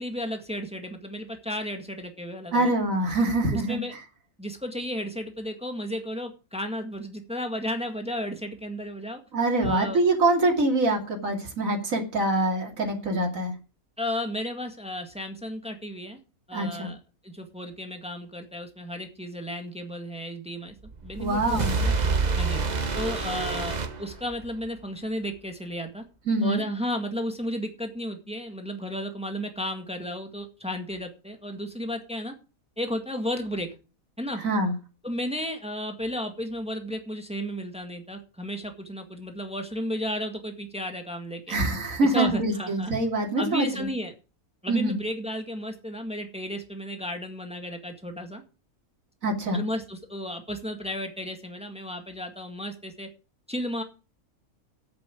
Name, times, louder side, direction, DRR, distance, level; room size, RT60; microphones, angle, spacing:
voice 1, 0.0-2.7 3.5-3.9 4.4-9.2 9.6-10.0 14.0-16.2 16.5-17.0 17.2-20.7 21.0-21.9 22.4-22.6 23.0-26.0 26.4-32.3 32.8-33.7 34.2-34.4 35.0-41.6 42.0-42.9 43.4-44.1 44.6-48.4 49.5-53.1 53.5-53.8, equal, 5° right, 5 dB, 1.8 m, -33 dB
voice 2, 2.5-3.8 9.3-13.5 16.5-16.9 21.2-21.7 26.3-26.6 34.4-34.7 41.5-43.9 44.7-45.0 49.2-49.6, right 2 dB, 65° right, 1 dB, 2.9 m, -24 dB
sound 1, 20.9-24.7, right 4 dB, 35° right, 1.0 m, -27 dB
9.1 x 7.7 x 8.3 m, 0.34 s
omnidirectional pair, 1.5 m